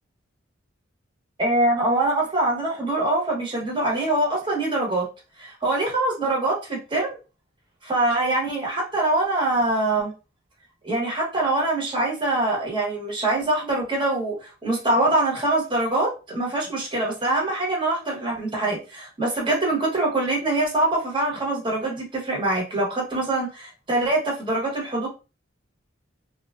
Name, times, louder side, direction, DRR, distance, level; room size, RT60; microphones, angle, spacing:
voice 1, 1.4-5.1 5.4-7.2 7.9-10.1 10.8-25.1, right 2 dB, 25° right, -2 dB, 1.0 m, -24 dB
2.9 x 2.3 x 2.3 m, 0.31 s
head